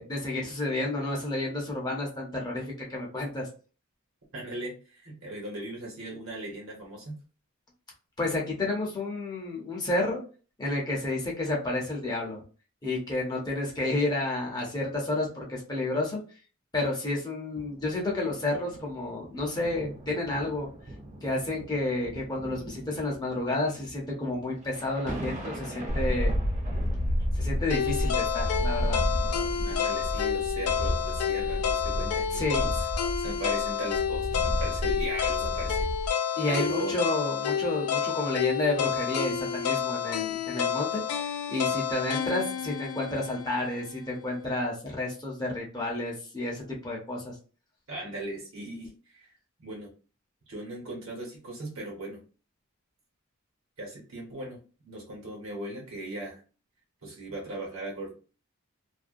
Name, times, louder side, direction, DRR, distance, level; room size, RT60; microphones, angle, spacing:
voice 1, 0.0-3.5 8.2-10.2 10.6-12.4 12.8-16.2 16.7-20.7 21.2-26.3 27.3-29.0 32.3-32.6 36.4-47.3, left 2 dB, 20° left, -2 dB, 0.6 m, -31 dB
voice 2, 4.3-7.2 29.6-32.9 33.2-35.9 36.5-37.0 47.9-49.3 49.6-49.9 50.5-52.2 53.8-54.6 54.8-56.4 57.0-58.1, right 1 dB, 70° right, -2 dB, 1.1 m, -38 dB
sound 1, 17.5-30.3 31.0-31.1, right 1 dB, 35° right, 0.7 m, -44 dB
sound 2, 25.9-36.1, equal, 60° left, 0.7 m, -30 dB
sound 3, 27.7-43.8, left 8 dB, 85° left, 0.4 m, -30 dB
2.4 x 2.1 x 2.5 m, 0.36 s
head